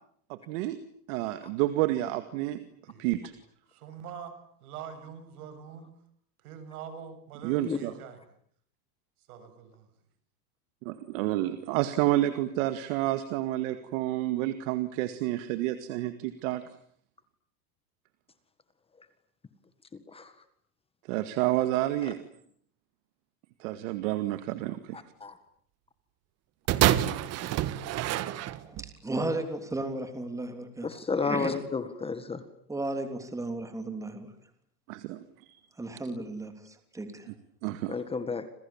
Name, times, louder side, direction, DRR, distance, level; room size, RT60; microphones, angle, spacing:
voice 1, 0.3-0.8 1.1-2.6 3.0-3.2 7.4-7.9 10.9-16.6 21.1-22.2 23.6-25.0 34.9-35.6 37.6-38.0, right 15 dB, 55° right, 10 dB, 2.1 m, -29 dB
voice 2, 3.7-4.4 4.6-5.9 6.4-8.2 9.3-9.9, right 7 dB, 70° right, 10 dB, 7.6 m, -44 dB
voice 3, 24.9-25.4 30.8-32.4 37.9-38.5, left 4 dB, 10° left, 11 dB, 1.8 m, -32 dB
sound 1, 26.7-28.9 29.7-29.8, right 13 dB, 35° right, 1.6 m, -27 dB
voice 4, 28.6-30.9 31.2-31.5 32.7-34.3 35.8-37.3, right 2 dB, 5° right, 7 dB, 3.3 m, -34 dB
29.5 x 27.5 x 7.3 m, 0.66 s
supercardioid pair, 150°, 46 cm